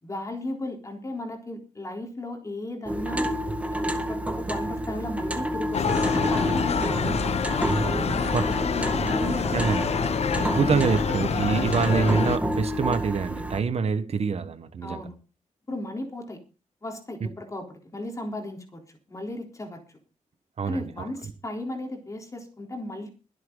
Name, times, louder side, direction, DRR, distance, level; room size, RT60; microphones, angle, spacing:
voice 1, 0.0-3.3 3.7-7.1 8.1-9.7 10.7-10.8 14.8-15.2 15.7-16.4 16.8-17.7 17.9-18.8 19.1-19.8 20.6-23.1, left 1 dB, 25° left, 3.8 m, -35 dB
sound 1, 2.9-13.6, equal, 10° right, 1.7 m, -29 dB
sound 2, 5.7-12.4, left 6 dB, 55° left, 1.0 m, -27 dB
voice 2, 10.3-15.1 20.6-21.1, right 5 dB, 55° right, 1.4 m, -26 dB
23.0 x 8.1 x 4.0 m
wide cardioid pair, 140°, 13 cm